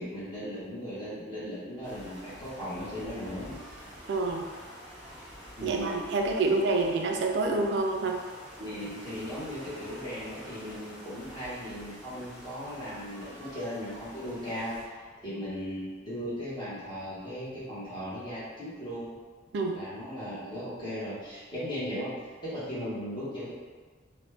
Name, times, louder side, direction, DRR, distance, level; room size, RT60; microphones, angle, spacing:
voice 1, 0.0-3.6 5.6-6.0 8.6-14.8 15.2-19.1 19.7-22.1 22.4-23.5, equal, 25° left, -11 dB, 1.1 m, -37 dB
sound 1, 1.8-14.8, equal, 5° right, 1.0 m, -48 dB
voice 2, 4.1-4.4 5.6-8.2 19.5-19.8, right 3 dB, 65° right, 2 dB, 0.3 m, -27 dB
3.1 x 2.1 x 3.2 m, 1.5 s
head